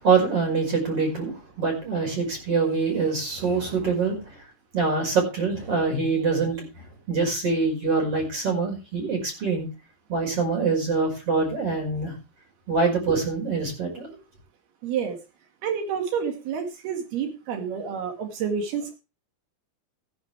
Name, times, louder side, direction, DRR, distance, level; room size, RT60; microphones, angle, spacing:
voice 1, 0.0-4.4 4.7-9.7 10.1-12.1 12.7-14.1, right 4 dB, 35° right, 2 dB, 6.2 m, -25 dB
voice 2, 14.8-15.2 15.6-19.0, right 7 dB, 90° right, 4 dB, 4.0 m, -29 dB
15.5 x 10.5 x 3.4 m, 0.29 s
omnidirectional pair, 4.4 m